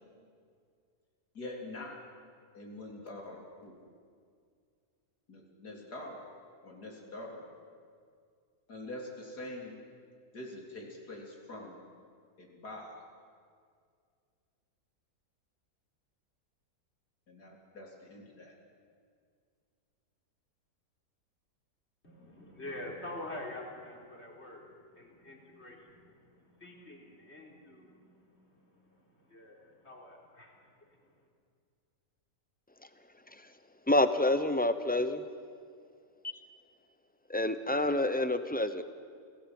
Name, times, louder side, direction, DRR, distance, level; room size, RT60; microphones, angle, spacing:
voice 1, 1.3-2.0 2.5-3.8 5.3-6.2 6.6-7.4 8.7-9.8 10.3-11.8 12.4-13.0 17.3-18.6, left 1 dB, 85° left, 0 dB, 4.2 m, -44 dB
voice 2, 22.0-31.3, left 1 dB, 40° left, -1 dB, 4.2 m, -47 dB
voice 3, 33.9-35.2 37.3-38.8, left 1 dB, 10° left, 10 dB, 0.7 m, -27 dB
28.5 x 17.5 x 7.9 m, 2.2 s
omnidirectional pair, 1.7 m